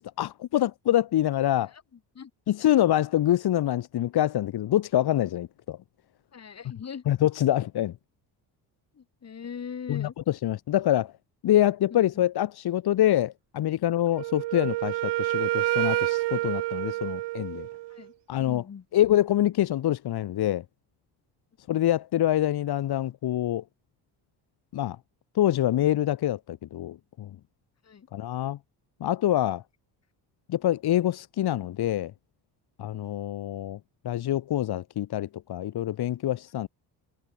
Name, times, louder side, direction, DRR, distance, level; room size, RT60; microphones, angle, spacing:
voice 1, 0.0-1.7 2.5-5.8 7.0-7.9 9.9-11.1 11.4-17.7 18.3-18.6 18.9-20.6 21.7-23.6 24.7-25.0 25.3-27.4 28.1-28.6 29.0-29.6 30.5-32.1 32.8-33.8 34.0-36.7, left 12 dB, 65° left, 3.2 m, -25 dB
voice 2, 6.3-7.0 9.0-10.1 11.9-12.0 17.9-18.1 18.4-18.8 27.9-28.1, left 7 dB, 40° left, 6.4 m, -40 dB
Wind instrument woodwind instrument, 14.1-18.0, right 19 dB, 80° right, 0.9 m, -28 dB
cardioid pair, 115°, 41 cm